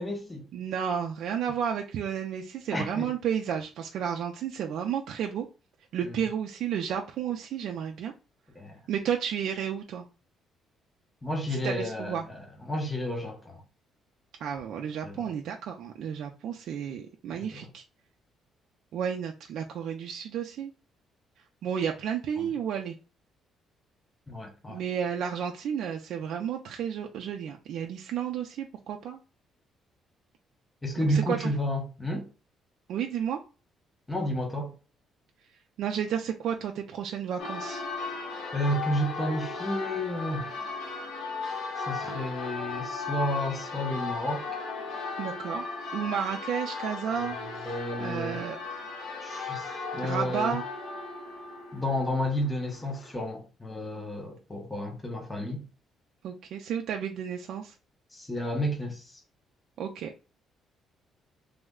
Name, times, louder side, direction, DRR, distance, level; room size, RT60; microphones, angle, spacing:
voice 1, 0.0-0.5 2.7-3.1 8.6-8.8 11.2-13.6 15.0-15.1 17.3-17.7 22.4-22.5 24.3-24.8 30.8-32.2 34.1-34.7 38.5-40.6 41.9-44.5 47.2-47.3 47.7-48.4 49.2-50.6 51.7-55.6 58.1-59.0, equal, 10° left, 0.6 m, -31 dB
voice 2, 0.5-5.5 5.9-8.1 8.9-10.0 11.5-12.3 14.4-17.8 18.9-20.7 21.6-23.0 24.7-29.2 31.0-31.5 32.9-33.4 35.8-37.8 45.2-45.7 45.9-47.7 48.0-48.6 50.0-50.6 56.2-57.7 59.8-60.1, right 8 dB, 60° right, 0.4 m, -32 dB
Church bell, 37.4-53.1, left 4 dB, 60° left, 0.9 m, -36 dB
3.1 x 2.1 x 3.5 m
cardioid pair, 170°, 0 cm